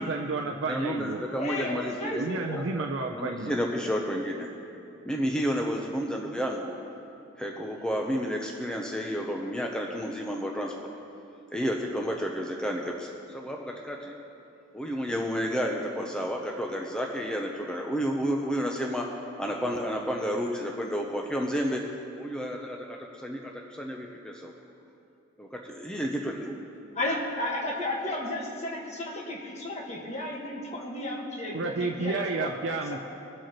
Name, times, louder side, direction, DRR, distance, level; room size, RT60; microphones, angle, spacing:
voice 1, 0.0-1.2 2.1-3.6 31.5-33.0, right 3 dB, 65° right, 3 dB, 0.5 m, -31 dB
voice 2, 0.7-2.8 3.1-4.5 5.0-6.8 7.4-10.9 11.5-13.1 13.3-14.2 14.7-19.1 19.4-21.8 22.2-24.5 25.4-26.6, equal, 5° left, 0 dB, 0.6 m, -31 dB
voice 3, 1.4-2.6 26.9-32.5, left 1 dB, 35° left, -1 dB, 1.4 m, -33 dB
21.5 x 7.6 x 3.0 m, 2.7 s
head